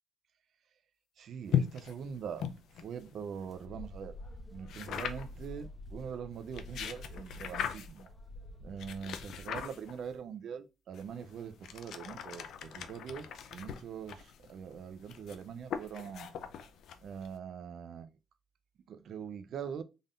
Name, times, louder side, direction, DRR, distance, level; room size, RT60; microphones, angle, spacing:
voice 1, 1.2-2.5 2.8-4.2 4.5-8.1 8.6-16.3 17.0-18.2 18.9-19.8, right 7 dB, 65° right, 0.6 m, -43 dB
sound 1, 1.5-3.7 4.7-5.5 6.4-8.1 8.8-10.2 10.9-17.4, left 8 dB, 75° left, 0.5 m, -39 dB
sound 2, 3.5-9.8, left 1 dB, 30° left, 0.9 m, -48 dB
3.8 x 3.6 x 2.5 m
cardioid pair, 90°, 0 cm